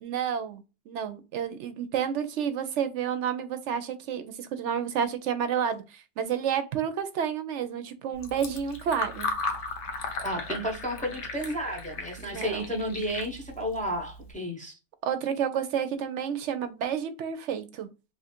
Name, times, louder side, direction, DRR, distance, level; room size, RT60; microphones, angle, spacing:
voice 1, 0.0-9.3 12.2-12.7 15.0-17.9, right 8 dB, 75° right, 0.9 m, -30 dB
Fill (with liquid), 8.1-14.3, left 3 dB, 70° left, 1.0 m, -36 dB
voice 2, 10.2-14.8, equal, 10° left, 0.6 m, -32 dB
3.1 x 2.5 x 4.2 m
omnidirectional pair, 1.2 m